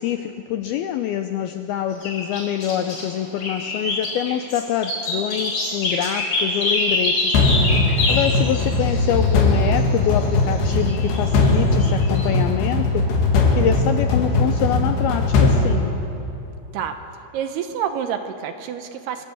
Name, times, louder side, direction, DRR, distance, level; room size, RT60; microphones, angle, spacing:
voice 1, 0.0-7.4 8.1-13.1 13.5-16.0, left 10 dB, 90° left, 7 dB, 2.2 m, -25 dB
sound 1, 2.0-3.0 3.4-12.3, left 2 dB, 40° left, 6.1 m, -26 dB
sound 2, 7.3-16.5, left 3 dB, 70° left, 4.4 m, -19 dB
voice 2, 17.3-19.3, right 8 dB, 70° right, 7 dB, 2.8 m, -28 dB
26.5 x 18.5 x 8.0 m, 2.8 s
omnidirectional pair, 5.2 m